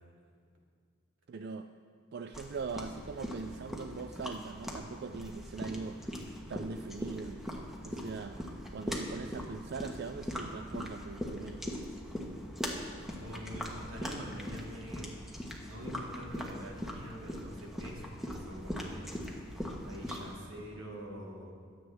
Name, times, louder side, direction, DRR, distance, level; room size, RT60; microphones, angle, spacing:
voice 1, 1.3-1.7 2.1-7.4 7.8-8.4 8.7-11.8, right 4 dB, 55° right, 8 dB, 0.4 m, -41 dB
sound 1, 2.3-20.3, equal, ahead, 1.2 m, -41 dB
voice 2, 13.2-15.1 15.6-19.1 19.8-21.5, equal, 85° right, -2 dB, 2.2 m, -45 dB
23.5 x 7.9 x 3.4 m, 2.1 s
head